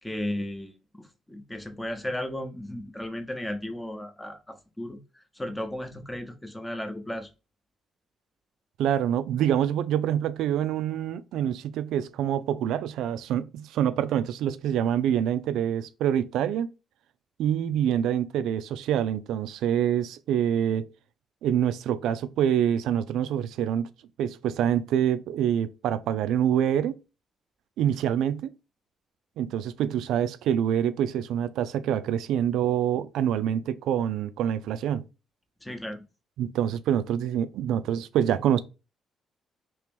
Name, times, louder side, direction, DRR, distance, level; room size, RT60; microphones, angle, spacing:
voice 1, 0.0-5.0 5.4-7.3 35.6-36.0, left 1 dB, 10° left, 0.7 m, -35 dB
voice 2, 8.8-16.7 17.4-20.9 21.4-23.9 24.2-27.0 27.8-28.5 29.4-35.0 36.4-38.6, right 10 dB, 85° right, 0.3 m, -26 dB
3.0 x 2.9 x 3.5 m
cardioid pair, 90°, 0 cm